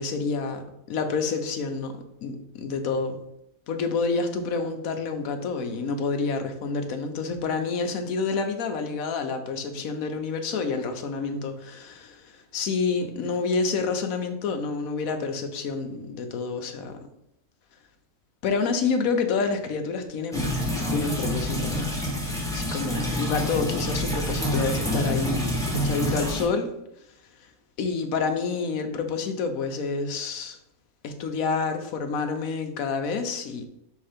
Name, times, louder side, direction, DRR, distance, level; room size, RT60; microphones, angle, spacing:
voice 1, 0.0-3.2 3.7-17.1 17.7-17.9 18.4-21.9 22.5-30.6 31.0-33.7, left 4 dB, 70° left, 1.2 m, -28 dB
sound 1, 20.3-26.4, equal, ahead, 1.4 m, -27 dB
5.6 x 3.5 x 5.0 m
omnidirectional pair, 1.6 m